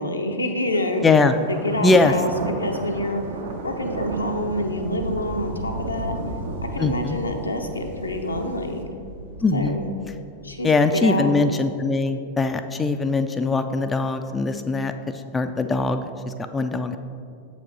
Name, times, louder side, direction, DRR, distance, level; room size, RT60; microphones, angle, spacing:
voice 1, 0.0-1.1 1.5-2.3 2.6-3.2 3.6-6.1 6.7-8.8 9.5-9.9 10.4-11.5, left 1 dB, 80° left, 4 dB, 0.6 m, -27 dB
Thunder, 0.8-10.7, right 2 dB, 60° right, 0.7 m, -33 dB
voice 2, 1.0-1.3 1.8-2.1 6.8-7.2 9.4-9.8 10.6-14.9 15.3-17.0, left 3 dB, 15° left, 8 dB, 0.3 m, -21 dB
7.2 x 5.0 x 3.9 m, 2.4 s
figure-of-eight pair, 90°, 0 cm